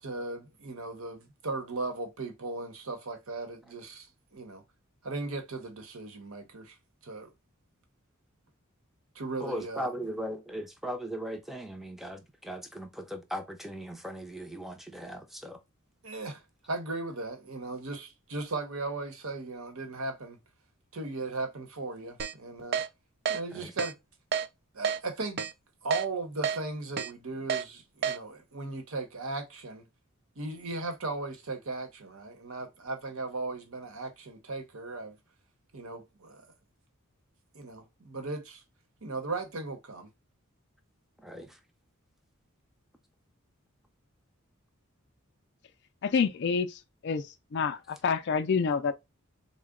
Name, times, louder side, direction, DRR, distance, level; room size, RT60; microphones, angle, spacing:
voice 1, 0.0-4.6 5.0-6.8 7.0-7.3 9.1-9.9 16.0-16.4 16.7-20.4 20.9-22.8 23.3-24.0 24.7-25.5 25.8-29.9 30.4-35.2 35.7-36.5 37.5-38.6 39.0-40.1, right 3 dB, 80° right, 1.0 m, -37 dB
voice 2, 9.4-15.6 23.5-23.7 41.2-41.6, equal, ahead, 0.5 m, -38 dB
Keyboard (musical), 22.2-22.3 22.7-22.9 23.3-23.4 23.8-23.9 24.3-24.5 24.8-25.0 25.4-25.5 25.9-26.0 26.4-26.6 27.0-27.1 27.5-27.6 28.0-28.2, right 7 dB, 50° right, 0.4 m, -29 dB
voice 3, 46.0-47.3 47.5-48.9, left 5 dB, 55° left, 0.4 m, -28 dB
3.8 x 2.1 x 3.6 m
head